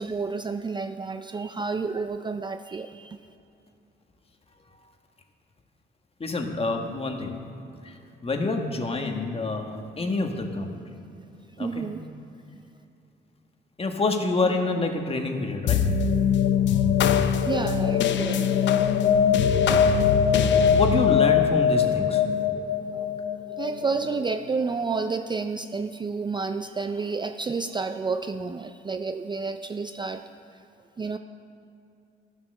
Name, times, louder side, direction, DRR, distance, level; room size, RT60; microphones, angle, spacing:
voice 1, 0.0-3.2 11.6-12.0 17.1-18.4 23.6-30.2 31.0-31.2, right 4 dB, 25° right, 8 dB, 0.4 m, -30 dB
voice 2, 6.2-7.4 7.8-11.0 11.6-11.9 13.8-15.9 20.7-22.2, left 3 dB, 30° left, 4 dB, 1.4 m, -27 dB
sound 1, 15.7-24.4, left 7 dB, 65° left, 0.6 m, -22 dB
12.5 x 7.6 x 6.5 m, 2.7 s
cardioid pair, 90°, 20 cm